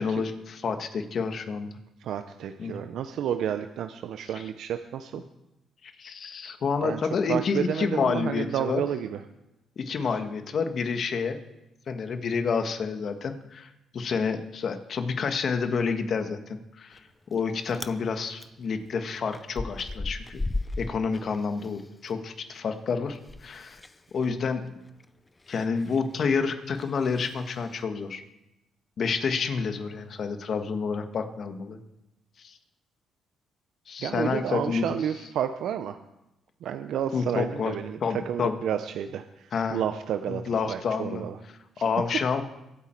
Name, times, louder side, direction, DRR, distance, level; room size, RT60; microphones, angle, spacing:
voice 1, 0.0-1.7 2.6-2.8 5.8-8.8 9.8-11.4 11.9-17.0 17.3-20.4 20.8-23.8 24.1-24.6 25.5-28.2 29.0-31.8 32.4-32.6 33.9-34.9 37.1-37.7 38.0-38.6 39.5-39.8 40.3-41.2 41.8-42.4, left 5 dB, 55° left, 7 dB, 1.4 m, -29 dB
voice 2, 2.0-5.2 6.8-9.2 24.3-24.4 34.0-36.0 36.6-41.4, right 9 dB, 75° right, 8 dB, 0.7 m, -31 dB
Chewing mastication, 16.9-17.4 17.7-18.0 18.4-22.1 22.4-27.8, left 2 dB, 20° left, 0.7 m, -37 dB
23.5 x 9.0 x 4.5 m, 0.92 s
cardioid pair, 90°, 0 cm